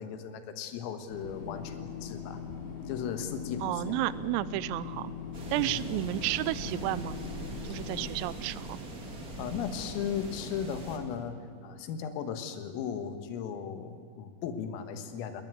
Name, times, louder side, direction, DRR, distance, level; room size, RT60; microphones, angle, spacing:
voice 1, 0.0-2.4 2.9-3.9 5.6-5.8 9.4-15.4, left 7 dB, 85° left, 8 dB, 4.1 m, -36 dB
sound 1, 1.1-8.1, left 6 dB, 60° left, 5.1 m, -41 dB
voice 2, 3.6-5.1 5.5-7.2 7.6-8.8, right 15 dB, 90° right, 17 dB, 3.4 m, -32 dB
sound 2, 5.3-11.0, right 2 dB, 45° right, 1.2 m, -41 dB
19.5 x 19.0 x 9.7 m, 2.3 s
omnidirectional pair, 5.9 m